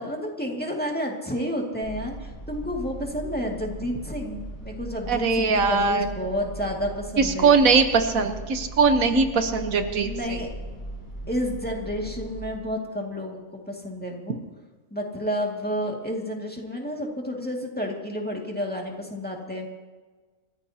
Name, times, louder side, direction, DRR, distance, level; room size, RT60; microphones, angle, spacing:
voice 1, 0.0-7.6 10.0-10.5 11.3-14.4 14.9-19.7, equal, 5° left, -1 dB, 2.2 m, -30 dB
sound 1, 1.8-12.6, right 2 dB, 45° left, 5.1 m, -38 dB
voice 2, 5.1-6.1 7.2-10.4, right 4 dB, 85° right, 7 dB, 1.5 m, -21 dB
27.0 x 15.0 x 2.9 m, 1.4 s
omnidirectional pair, 1.4 m